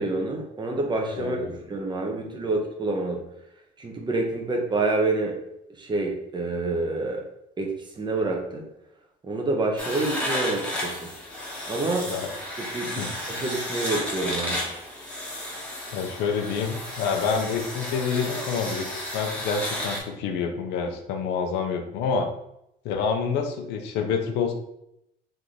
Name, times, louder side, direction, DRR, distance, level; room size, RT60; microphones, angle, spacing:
voice 1, 0.0-3.2 3.8-5.4 5.8-7.2 7.6-8.7 9.2-11.1 11.7-12.1 12.7-14.6, right 2 dB, 25° right, 1 dB, 0.9 m, -27 dB
voice 2, 1.1-1.5 2.1-2.4 12.1-12.3 13.0-13.1 15.9-22.3 22.8-24.5, left 5 dB, 90° left, 5 dB, 0.7 m, -28 dB
sound 1, 9.8-20.0, left 1 dB, 5° left, 1.1 m, -33 dB
3.5 x 3.1 x 3.9 m, 0.80 s
cardioid pair, 110°, 17 cm